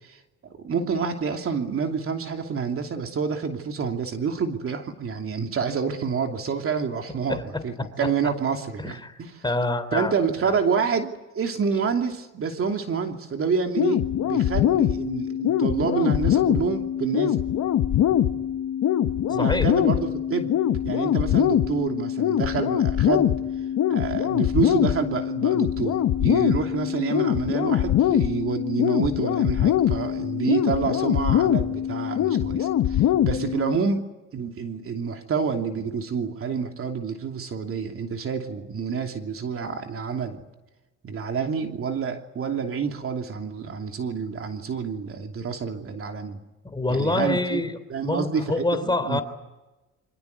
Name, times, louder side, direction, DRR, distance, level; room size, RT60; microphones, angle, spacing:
voice 1, 0.0-7.4 7.6-9.4 9.9-17.4 19.3-20.5 20.8-23.3 23.9-34.0 34.3-40.4 41.0-46.4 46.9-47.6 47.9-49.2, right 6 dB, 45° right, 4 dB, 2.9 m, -28 dB
voice 2, 7.3-8.1 8.8-10.1 10.4-10.5 19.4-19.7 46.6-47.7 48.0-49.2, left 2 dB, 15° left, 10 dB, 3.2 m, -26 dB
sound 1, 13.8-33.8, left 11 dB, 65° left, 1.5 m, -23 dB
28.0 x 25.5 x 8.4 m, 1.1 s
cardioid pair, 100°, 30 cm